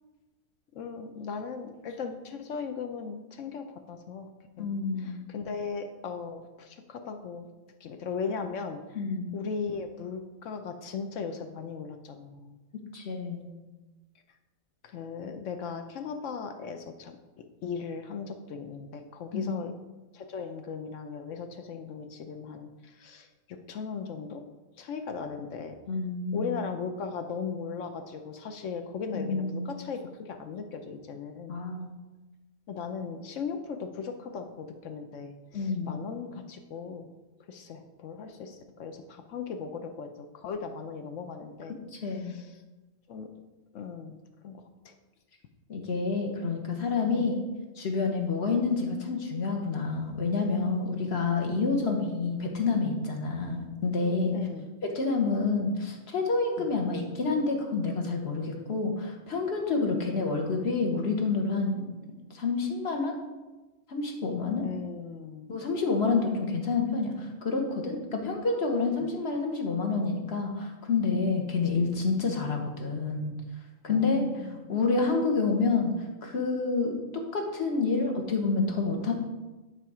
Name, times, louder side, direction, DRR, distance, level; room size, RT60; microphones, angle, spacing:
voice 1, 0.7-4.3 4.6-4.7 5.0-7.5 7.8-9.0 9.3-12.6 14.8-17.2 17.6-19.7 20.1-24.4 24.8-25.8 26.3-31.6 32.7-37.1 37.5-41.8 42.0-42.6 43.1-43.3 43.7-44.2 44.4-44.9 47.1-47.3 51.7-51.8 54.3-54.7 56.6-56.7 59.8-60.0 64.6-65.4 69.0-69.1 73.9-74.8, left 5 dB, 70° left, 6 dB, 1.0 m, -38 dB
voice 2, 4.6-5.2 8.9-9.3 12.9-13.5 19.3-19.5 25.9-26.6 29.1-29.7 31.5-31.9 35.5-36.0 41.9-42.4 45.7-47.4 47.8-54.3 54.8-61.9 62.3-63.2 63.9-64.6 65.5-73.3 73.8-74.2 74.7-75.9 76.2-79.1, left 4 dB, 55° left, 2 dB, 1.3 m, -28 dB
10.0 x 3.5 x 4.8 m, 1.1 s
omnidirectional pair, 1.4 m